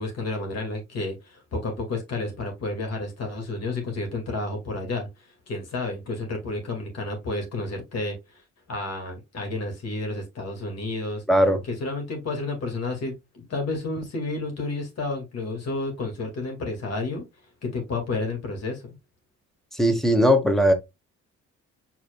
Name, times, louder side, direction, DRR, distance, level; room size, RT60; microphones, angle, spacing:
voice 1, 0.0-8.4 8.7-11.2 11.6-17.2 17.6-18.9, left 2 dB, 55° left, 2.1 m, -31 dB
voice 2, 11.3-11.6 19.7-20.7, equal, ahead, 1.1 m, -19 dB
4.9 x 4.2 x 2.3 m
cardioid pair, 90°, 30 cm